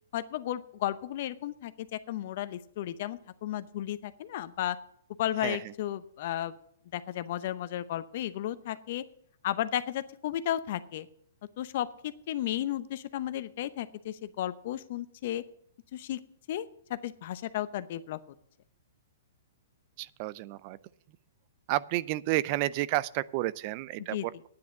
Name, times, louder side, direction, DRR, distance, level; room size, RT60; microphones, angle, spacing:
voice 1, 0.1-4.8 5.2-6.5 6.9-9.0 9.4-11.1 11.6-15.4 15.9-16.2 16.5-18.2 24.1-24.2, left 12 dB, 55° left, 13 dB, 0.8 m, -34 dB
voice 2, 5.4-5.7 20.0-20.8 21.7-24.5, right 16 dB, 45° right, 19 dB, 0.4 m, -31 dB
9.6 x 9.3 x 6.6 m, 0.67 s
hypercardioid pair, 130°, 0 cm